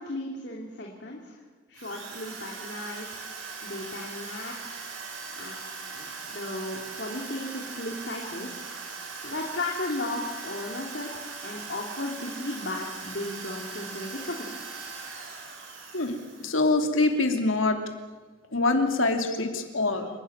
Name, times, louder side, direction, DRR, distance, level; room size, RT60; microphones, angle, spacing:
voice 1, 0.0-1.4 1.7-3.1 3.6-4.8 5.4-8.7 9.2-14.5, left 2 dB, 60° left, -1 dB, 2.9 m, -35 dB
Drill, 1.7-16.9, right 4 dB, 90° right, 5.0 m, -40 dB
voice 2, 15.9-17.8 18.5-20.1, left 2 dB, 90° left, 5 dB, 2.9 m, -25 dB
29.0 x 12.5 x 9.8 m, 1.4 s
head